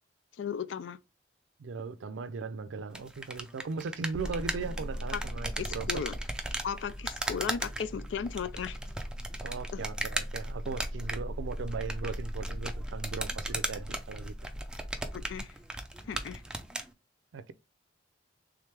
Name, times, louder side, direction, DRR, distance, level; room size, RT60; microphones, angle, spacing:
voice 1, 0.4-1.0 5.1-5.2 5.6-6.1 6.6-8.8 9.7-9.8 15.1-15.5 16.1-16.4, left 7 dB, 70° left, 0.4 m, -36 dB
voice 2, 1.6-6.0 9.4-14.5 17.3-17.5, right 4 dB, 80° right, 0.4 m, -38 dB
sound 1, 2.9-16.9, right 1 dB, 5° right, 0.5 m, -38 dB
sound 2, 4.1-15.4, equal, 20° left, 1.6 m, -40 dB
3.5 x 3.2 x 3.3 m
head